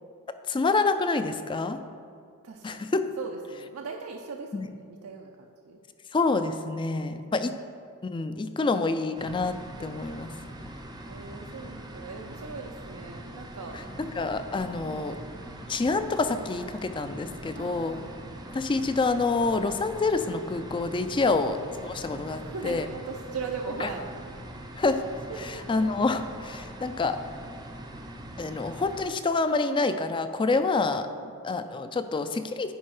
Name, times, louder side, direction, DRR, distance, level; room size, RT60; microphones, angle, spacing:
voice 1, 0.5-1.8 2.6-3.0 4.5-4.7 6.1-7.5 8.0-10.3 13.7-15.1 15.7-18.0 18.5-21.6 21.8-22.9 23.8-23.9 24.8-25.0 25.4-27.2 28.4-31.1 31.4-32.7, left 3 dB, 20° left, 10 dB, 0.3 m, -27 dB
voice 2, 2.4-5.8 10.6-13.8 14.8-15.1 17.5-18.1 21.2-21.4 22.3-24.4 25.3-25.4 31.1-31.4, right 4 dB, 80° right, 1 dB, 0.5 m, -40 dB
sound 1, 9.2-29.1, right 1 dB, 20° right, 0.6 m, -42 dB
10.0 x 4.5 x 4.8 m, 2.4 s
head